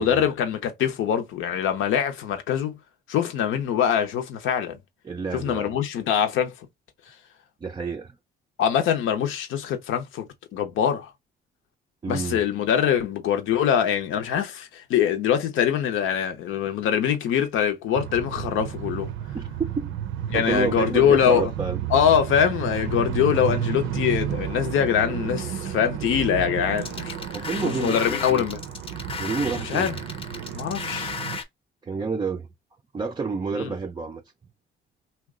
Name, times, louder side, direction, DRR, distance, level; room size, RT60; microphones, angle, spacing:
voice 1, 0.0-2.8 3.1-4.8 5.3-6.5 8.6-11.1 12.1-19.1 20.3-21.5 21.9-27.1 27.6-28.6 29.6-30.0 30.5-31.1 33.6-33.7, left 8 dB, 85° left, 0.7 m, -23 dB
voice 2, 5.0-5.7 7.6-8.2 12.0-12.4 19.3-19.9 20.3-21.8 27.3-28.4 29.2-30.0 31.8-32.5 32.9-34.2, right 5 dB, 20° right, 0.4 m, -29 dB
sound 1, 17.9-31.4, right 9 dB, 90° right, 0.5 m, -32 dB
sound 2, 26.8-31.4, left 5 dB, 25° left, 0.6 m, -34 dB
2.9 x 2.2 x 3.5 m
cardioid pair, 90°, 20 cm